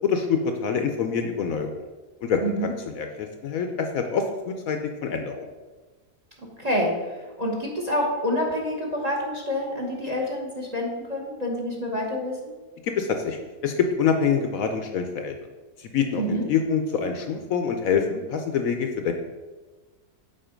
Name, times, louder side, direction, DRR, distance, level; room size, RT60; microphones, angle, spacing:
voice 1, 0.0-1.7 2.2-5.5 12.8-15.3 15.8-19.1, left 6 dB, 65° left, 5 dB, 1.0 m, -26 dB
voice 2, 2.4-2.7 6.4-12.5 16.1-16.5, equal, 30° right, -1 dB, 1.0 m, -27 dB
7.9 x 4.2 x 5.1 m, 1.3 s
omnidirectional pair, 1.7 m